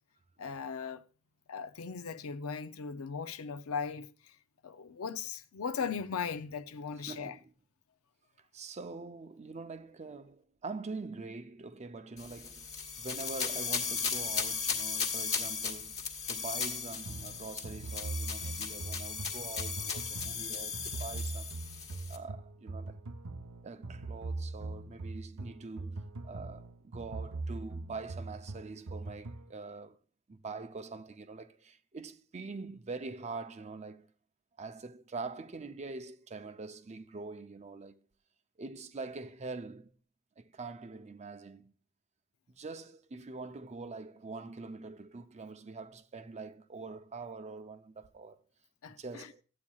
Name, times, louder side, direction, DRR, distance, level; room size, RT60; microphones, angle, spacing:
voice 1, 0.4-1.0 1.5-4.4 4.6-7.4 48.8-49.3, left 6 dB, 70° left, 0.5 m, -38 dB
voice 2, 7.1-7.4 8.5-12.7 13.0-21.5 22.1-23.0 23.6-30.0 30.3-34.1 34.6-38.0 38.6-39.9 40.4-41.7 42.5-48.4 49.0-49.4, right 3 dB, 30° right, 0.5 m, -44 dB
sound 1, 12.2-22.2, left 6 dB, 30° left, 1.3 m, -36 dB
sound 2, 17.1-29.5, right 3 dB, 70° right, 0.7 m, -41 dB
13.5 x 8.5 x 2.3 m
head